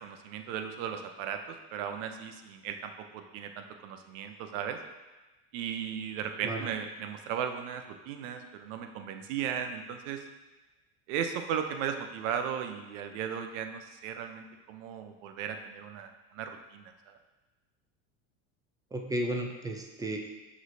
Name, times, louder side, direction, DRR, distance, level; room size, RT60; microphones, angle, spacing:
voice 1, 0.0-4.8 5.5-10.2 11.1-16.9, right 8 dB, 80° right, 6 dB, 0.6 m, -36 dB
voice 2, 18.9-20.2, right 1 dB, 10° right, 3 dB, 0.4 m, -33 dB
6.0 x 3.1 x 2.6 m, 1.1 s
supercardioid pair, 110°, 37 cm